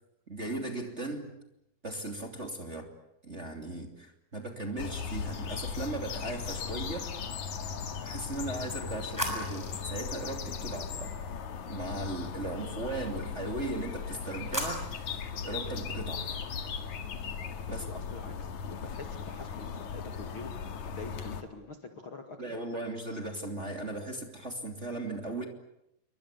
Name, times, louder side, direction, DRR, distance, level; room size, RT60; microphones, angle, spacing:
voice 1, 0.3-1.3 1.8-2.9 3.2-7.1 8.0-11.1 11.7-14.9 15.4-16.3 17.6-17.9 22.4-25.5, right 2 dB, 20° right, 3 dB, 2.8 m, -37 dB
sound 1, 4.8-21.4, left 6 dB, 55° left, 3.0 m, -38 dB
sound 2, 8.3-11.4 13.8-15.3, equal, 5° left, 6.2 m, -40 dB
voice 2, 17.7-22.4, left 4 dB, 40° left, 5 dB, 2.4 m, -45 dB
28.5 x 24.5 x 8.4 m, 0.81 s
omnidirectional pair, 4.3 m